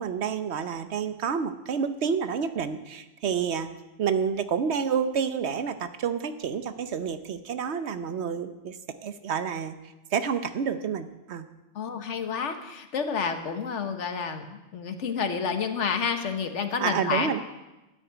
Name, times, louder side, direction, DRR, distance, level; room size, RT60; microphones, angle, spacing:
voice 1, 0.0-3.7 4.0-9.8 10.1-11.5 16.8-17.4, right 7 dB, 70° right, 10 dB, 1.1 m, -29 dB
voice 2, 11.7-17.4, left 6 dB, 75° left, 7 dB, 1.4 m, -29 dB
12.5 x 6.3 x 9.2 m, 1.0 s
omnidirectional pair, 1.2 m